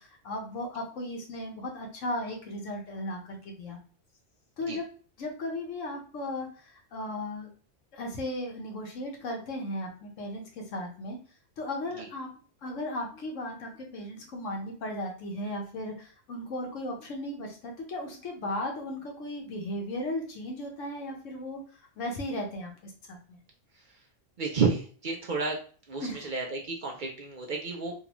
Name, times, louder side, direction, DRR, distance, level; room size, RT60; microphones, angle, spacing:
voice 1, 0.0-3.8 4.6-4.9 5.2-7.5 7.9-11.2 11.6-12.3 12.6-21.6 22.0-23.4 26.0-26.3, left 1 dB, 85° left, 1 dB, 1.3 m, -36 dB
voice 2, 24.4-25.6 25.9-27.9, right 4 dB, 50° right, 0 dB, 0.6 m, -31 dB
3.7 x 2.4 x 2.9 m, 0.40 s
omnidirectional pair, 1.3 m